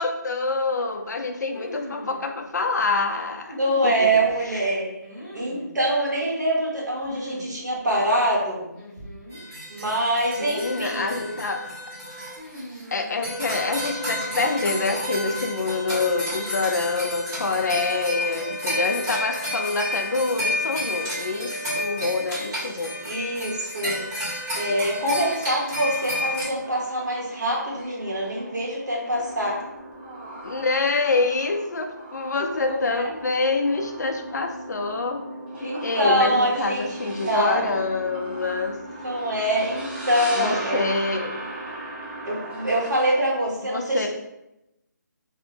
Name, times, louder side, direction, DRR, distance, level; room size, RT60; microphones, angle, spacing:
voice 1, 0.0-3.6 3.8-4.1 4.5-4.6 10.4-11.6 12.9-22.9 30.4-35.2 35.6-38.7 40.3-41.3 43.7-44.1, left 3 dB, 65° left, 4 dB, 0.4 m, -26 dB
sound 1, 1.5-2.2 3.5-4.3 5.0-5.7 7.0-7.5 7.7-7.8 8.7-9.4 10.6-11.3 12.4-13.1 14.1-14.9, equal, 5° left, 0.6 m, -40 dB
voice 2, 3.5-4.9 5.3-8.7 9.7-11.1 23.0-24.0 24.5-29.6 32.4-32.6 32.9-33.0 35.6-37.7 39.0-40.9 42.2-44.1, right 1 dB, 65° right, -4 dB, 1.0 m, -24 dB
sound 2, 9.3-12.9 13.2-26.4, left 1 dB, 15° right, 1.2 m, -31 dB
sound 3, 25.7-43.1, right 1 dB, 35° right, 0.7 m, -38 dB
2.5 x 2.1 x 2.7 m, 0.89 s
figure-of-eight pair, 165°, 10 cm